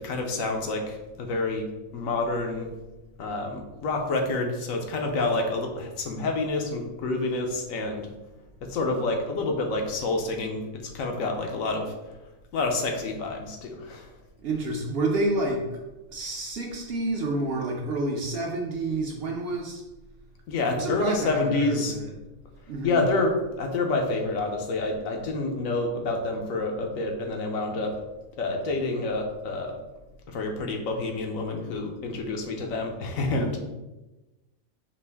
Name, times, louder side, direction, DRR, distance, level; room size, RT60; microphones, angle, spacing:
voice 1, 0.0-1.7 1.9-2.7 3.2-8.1 8.7-10.6 10.9-11.9 12.5-14.1 20.5-21.9 22.8-27.9 28.4-29.8 30.3-33.6, left 3 dB, 80° left, 2 dB, 1.1 m, -28 dB
voice 2, 14.4-15.8 16.1-19.8 20.7-22.2 22.7-23.0, right 2 dB, 60° right, 0 dB, 0.7 m, -29 dB
5.3 x 2.5 x 3.4 m, 1.1 s
omnidirectional pair, 1.4 m